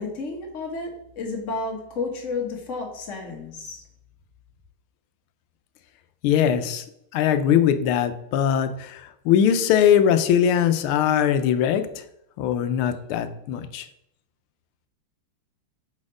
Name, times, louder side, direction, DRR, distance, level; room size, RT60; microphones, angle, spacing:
voice 1, 0.0-3.8, left 3 dB, 45° left, 2 dB, 1.2 m, -31 dB
voice 2, 6.2-6.8 7.1-11.8 12.4-13.9, left 9 dB, 90° left, 10 dB, 1.5 m, -21 dB
4.9 x 4.2 x 4.8 m, 0.76 s
omnidirectional pair, 2.3 m